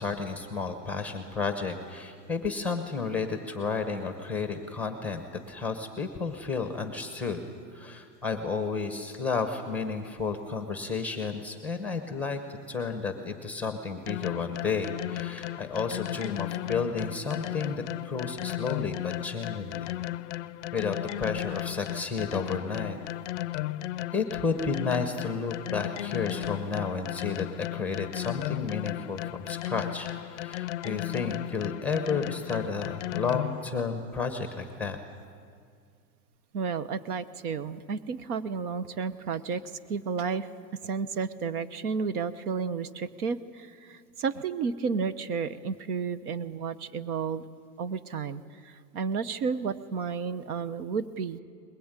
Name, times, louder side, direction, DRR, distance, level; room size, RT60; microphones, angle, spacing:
voice 1, 0.0-7.4 7.7-12.4 12.7-19.9 20.7-23.0 24.1-35.0, left 4 dB, 5° left, 7 dB, 0.9 m, -32 dB
sound 1, 14.1-33.7, left 15 dB, 50° left, 0.5 m, -35 dB
voice 2, 36.5-39.6 39.9-40.5 40.8-47.5 47.8-51.4, right 5 dB, 60° right, 14 dB, 1.2 m, -32 dB
21.0 x 20.5 x 9.1 m, 2.2 s
supercardioid pair, 165°, 49 cm